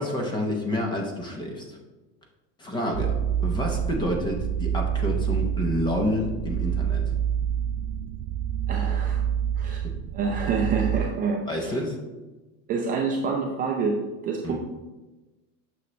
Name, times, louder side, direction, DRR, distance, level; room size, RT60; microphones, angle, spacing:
voice 1, 0.0-1.8 2.6-3.2 3.4-7.0 9.8-9.9 11.5-12.0 14.4-14.6, left 1 dB, 10° left, 1 dB, 0.7 m, -28 dB
sound 1, 2.9-11.1, right 9 dB, 65° right, 0.6 m, -27 dB
voice 2, 8.7-9.2 9.6-9.8 10.1-11.8 12.7-14.0 14.2-14.6, right 5 dB, 20° right, -1 dB, 0.5 m, -27 dB
9.3 x 6.4 x 3.2 m, 1.2 s
supercardioid pair, 175°, 40 cm